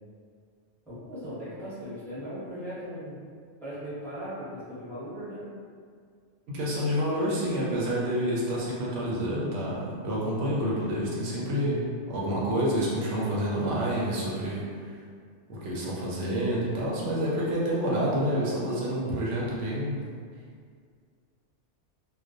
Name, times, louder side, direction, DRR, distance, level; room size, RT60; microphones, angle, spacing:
voice 1, 0.9-3.2 3.6-5.4, equal, ahead, -12 dB, 0.8 m, -38 dB
voice 2, 6.5-14.9 15.5-20.1, equal, 80° right, -6 dB, 0.9 m, -28 dB
2.3 x 2.1 x 2.5 m, 2.1 s
omnidirectional pair, 1.2 m